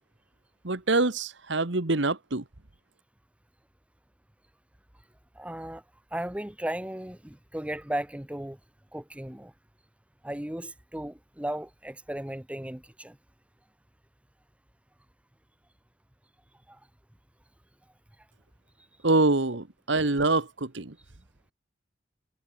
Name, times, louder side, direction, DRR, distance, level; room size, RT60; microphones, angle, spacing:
voice 1, 0.6-2.4 19.0-20.9, right 2 dB, 70° right, 1.6 m, -25 dB
voice 2, 5.3-5.8 6.1-8.6 8.9-9.5 10.2-13.2 16.7-16.8, right 1 dB, 5° right, 0.8 m, -35 dB
head